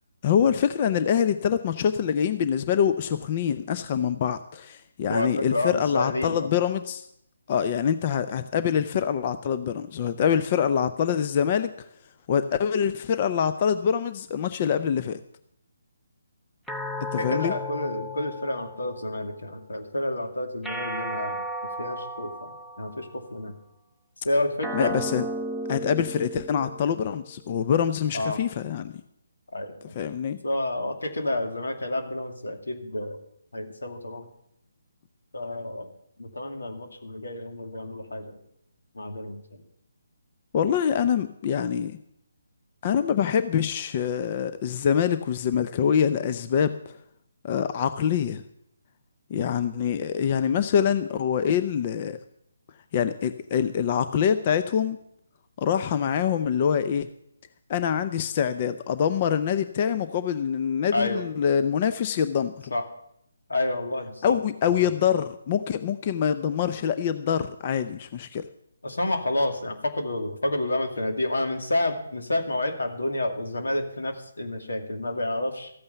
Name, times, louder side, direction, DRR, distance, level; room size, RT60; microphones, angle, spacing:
voice 1, 0.2-7.1 7.5-11.9 12.3-15.2 17.1-17.5 24.7-25.3 25.7-29.0 29.9-30.4 40.5-42.0 42.8-46.9 47.4-48.4 49.3-52.2 52.9-55.0 55.6-57.1 57.7-62.7 64.2-68.5, left 8 dB, 35° left, 11 dB, 0.6 m, -25 dB
voice 2, 5.1-6.5 17.2-21.4 21.8-22.5 22.8-23.5 24.2-25.0 28.1-28.4 29.5-30.0 30.4-33.2 33.5-34.3 35.3-35.9 36.2-38.4 38.9-39.6 60.9-61.2 62.7-62.8 63.5-64.4 64.8-64.9 68.8-75.7, left 1 dB, 85° left, 4 dB, 2.4 m, -29 dB
sound 1, 16.7-19.3 20.6-23.2 24.6-27.2, equal, ahead, 0.8 m, -34 dB
14.0 x 8.8 x 6.8 m, 0.74 s
figure-of-eight pair, 155°, 0 cm